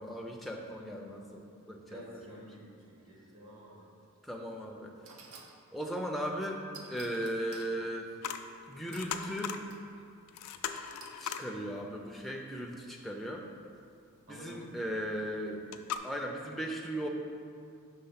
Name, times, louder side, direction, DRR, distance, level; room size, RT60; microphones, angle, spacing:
voice 1, 0.0-2.0 4.2-4.9 5.7-8.1 8.7-9.6 11.2-13.4 14.3-15.7 16.0-17.1, equal, ahead, 0 dB, 0.3 m, -37 dB
voice 2, 1.8-3.9 14.3-14.9, right 1 dB, 65° right, -5 dB, 1.2 m, -50 dB
sound 1, 4.4-4.5 5.1-5.6 6.7-7.7 8.9-9.9 11.0-11.4, right 5 dB, 90° right, 0.6 m, -52 dB
sound 2, 8.2-8.5 8.8-9.6 10.0-10.1 10.3-11.5 15.2-15.3 15.7-16.0, left 8 dB, 90° left, 0.3 m, -38 dB
5.5 x 3.4 x 5.7 m, 2.4 s
head